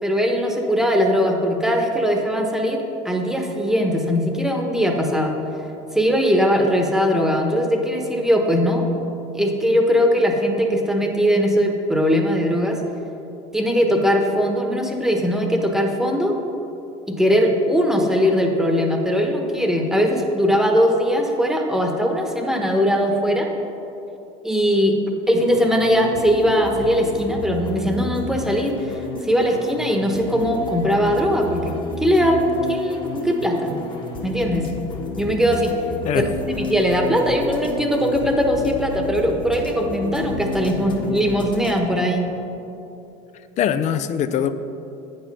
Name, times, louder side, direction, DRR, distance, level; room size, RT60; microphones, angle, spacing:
voice 1, 0.0-5.3 5.9-8.8 9.3-12.8 13.5-16.3 17.1-23.5 24.4-25.0 25.3-31.7 32.0-32.4 32.7-33.7 34.2-34.7 35.2-35.7 36.5-42.2, equal, 5° right, 2 dB, 1.1 m, -20 dB
sound 1, 25.3-41.8, left 2 dB, 30° left, 1.3 m, -32 dB
voice 2, 43.6-44.5, left 9 dB, 45° left, 12 dB, 0.5 m, -22 dB
8.7 x 5.3 x 5.4 m, 2.9 s
supercardioid pair, 90°, 17 cm